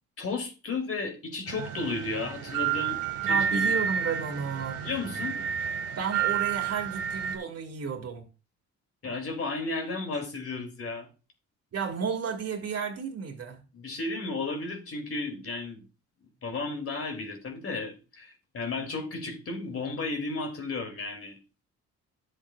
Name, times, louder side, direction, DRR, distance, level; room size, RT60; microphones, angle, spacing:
voice 1, 0.2-3.7 4.8-5.4 9.0-11.1 13.7-15.9 16.2-21.4, left 3 dB, 50° left, 2.9 m, -34 dB
sound 1, 1.5-7.4, right 7 dB, 90° right, 1.9 m, -30 dB
voice 2, 3.2-4.8 5.9-8.3 11.7-13.6, right 6 dB, 55° right, 2.5 m, -32 dB
11.0 x 7.6 x 2.4 m
cardioid pair, 90°, 30 cm